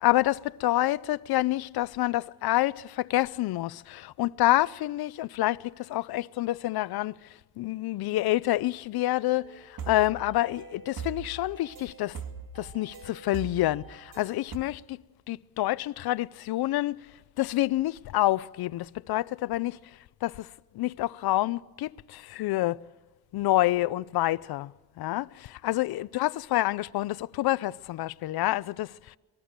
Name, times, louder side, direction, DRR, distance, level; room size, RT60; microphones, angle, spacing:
voice 1, 0.0-7.2 7.6-12.2 12.6-15.0 15.3-17.1 17.4-19.8 20.2-20.5 20.7-22.8 23.3-24.7 25.0-29.2, left 16 dB, 80° left, 0.6 m, -28 dB
sound 1, 9.4-14.6, right 6 dB, 65° right, 2.3 m, -42 dB
24.5 x 20.0 x 6.7 m
cardioid pair, 145°, 37 cm